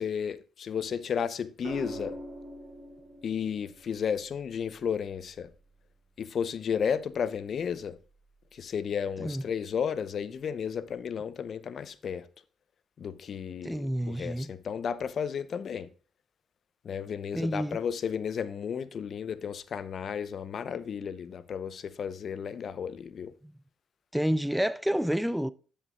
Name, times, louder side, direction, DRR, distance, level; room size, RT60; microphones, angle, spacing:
voice 1, 0.0-2.2 3.2-5.5 6.2-8.0 8.5-12.3 13.0-15.9 16.8-23.3, left 7 dB, 55° left, 0.7 m, -33 dB
sound 1, 1.6-5.8 7.5-7.9, right 1 dB, 65° right, 3.0 m, -44 dB
voice 2, 13.6-14.5 17.3-17.8 24.1-25.5, equal, 5° right, 0.4 m, -29 dB
10.5 x 6.7 x 2.4 m
cardioid pair, 90°, 0 cm